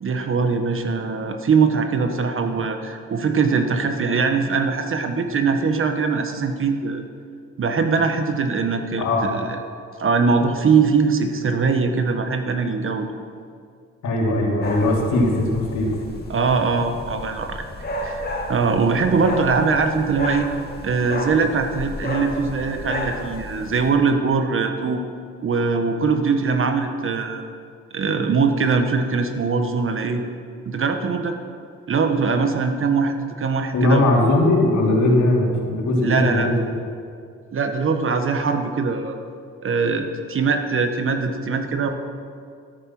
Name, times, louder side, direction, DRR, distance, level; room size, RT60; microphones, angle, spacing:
voice 1, 0.0-7.0 7.6-9.6 10.0-13.1 16.3-17.6 18.0-20.5 20.8-25.0 25.4-27.5 27.9-30.2 30.6-31.4 31.9-34.1 36.0-36.5 37.5-39.2 39.6-41.9, right 4 dB, 45° right, 6 dB, 1.2 m, -21 dB
voice 2, 14.0-15.9 33.7-36.7, left 2 dB, 70° left, -2 dB, 3.1 m, -19 dB
sound 1, 14.6-23.9, left 1 dB, 30° left, 2.1 m, -32 dB
12.5 x 8.8 x 6.0 m, 2.2 s
cardioid pair, 90°, 30 cm